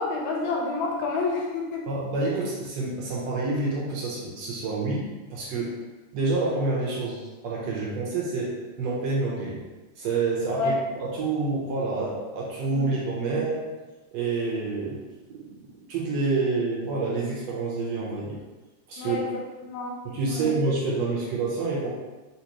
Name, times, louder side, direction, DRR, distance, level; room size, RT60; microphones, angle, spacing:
voice 1, 0.0-1.8 10.6-10.8 12.7-13.5 19.0-20.0 20.3-20.5, left 3 dB, 80° left, 0 dB, 1.8 m, -29 dB
voice 2, 1.9-5.8 6.1-9.6 10.0-13.6 14.1-15.0 15.3-18.4 18.9-19.2 20.0-21.9, right 3 dB, 75° right, -4 dB, 1.7 m, -28 dB
4.3 x 4.0 x 2.9 m, 1.2 s
omnidirectional pair, 3.4 m